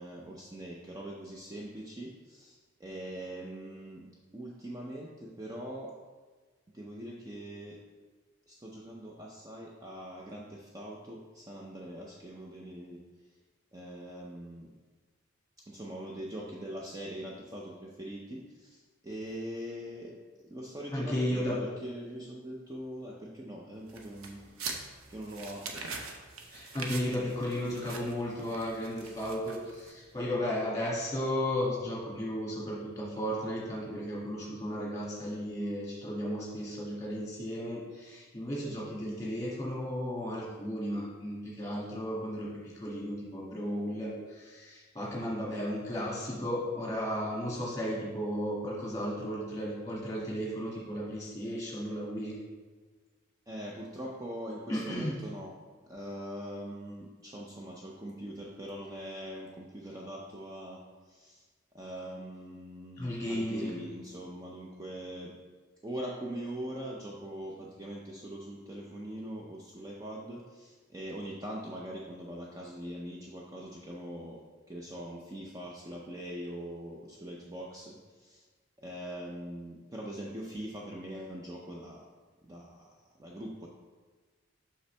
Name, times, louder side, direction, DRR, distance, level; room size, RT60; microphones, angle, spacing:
voice 1, 0.0-4.0 4.3-6.0 6.7-7.8 8.5-13.0 13.7-14.7 15.6-24.5 25.1-25.8 53.5-55.5 55.8-61.5 61.7-65.3 65.8-78.4 78.8-82.1 82.4-83.7, right 1 dB, 15° right, -3 dB, 0.5 m, -42 dB
voice 2, 20.9-21.6 26.5-42.5 42.7-52.3 54.7-55.1 63.0-63.8, equal, 15° left, -6 dB, 1.8 m, -34 dB
sound 1, 23.9-30.1, right 4 dB, 85° right, 0.7 m, -43 dB
6.0 x 5.4 x 3.3 m, 1.4 s
head